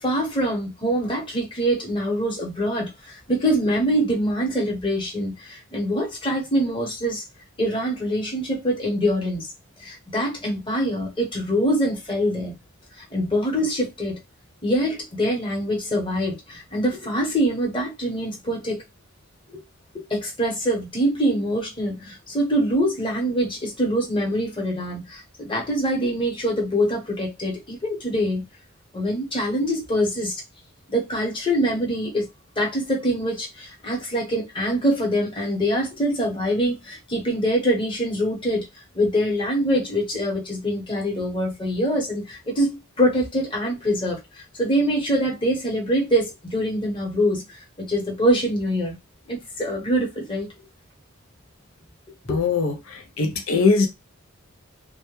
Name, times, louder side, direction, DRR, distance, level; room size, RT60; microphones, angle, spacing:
voice 1, 0.0-7.2 7.6-9.5 9.8-12.5 13.1-14.2 14.6-18.8 19.5-19.6 19.9-28.4 28.9-30.4 30.9-32.3 32.6-38.7 38.9-48.9 49.3-50.5 52.3-52.4, equal, 25° left, 0.9 m, -24 dB
voice 2, 52.3-53.9, left 4 dB, 75° left, 0.5 m, -21 dB
2.1 x 2.1 x 3.0 m
head